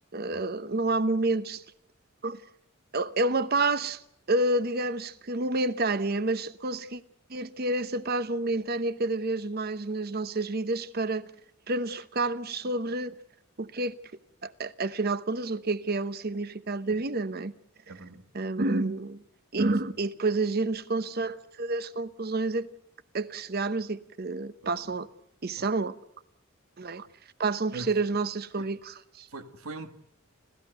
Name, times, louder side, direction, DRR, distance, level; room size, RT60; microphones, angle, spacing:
voice 1, 0.1-1.6 2.2-2.4 2.9-4.0 4.3-7.0 7.3-11.3 11.7-13.1 13.6-13.9 14.4-17.5 17.9-18.0 18.3-19.2 19.5-22.7 23.1-25.1 25.4-25.9 26.8-27.1 27.4-29.3, right 2 dB, 45° right, 0.9 m, -29 dB
voice 2, 17.9-18.2 19.6-19.7 24.9-25.0 25.6-25.7 27.7-27.9 28.6-28.7 29.3-29.9, right 3 dB, 90° right, 1.8 m, -41 dB
30.0 x 14.0 x 8.0 m
head